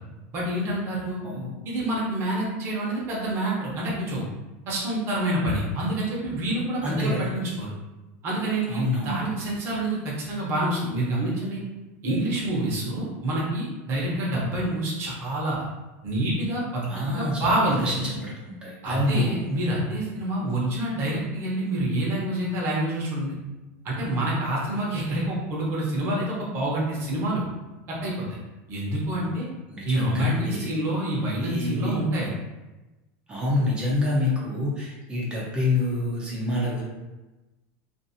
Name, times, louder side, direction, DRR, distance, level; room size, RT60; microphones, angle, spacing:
voice 1, 0.3-1.2 1.6-4.3 4.7-7.7 8.2-11.6 12.0-15.6 16.0-17.9 18.8-23.3 23.8-27.5 27.9-28.2 28.7-29.5 29.8-32.3, right 1 dB, 35° right, -5 dB, 0.9 m, -27 dB
voice 2, 6.8-7.3 8.7-9.3 16.9-19.5 29.7-30.7 31.4-31.9 33.3-36.8, left 2 dB, 15° right, -5 dB, 0.6 m, -27 dB
2.6 x 2.6 x 2.7 m, 1.1 s
supercardioid pair, 155°, 7 cm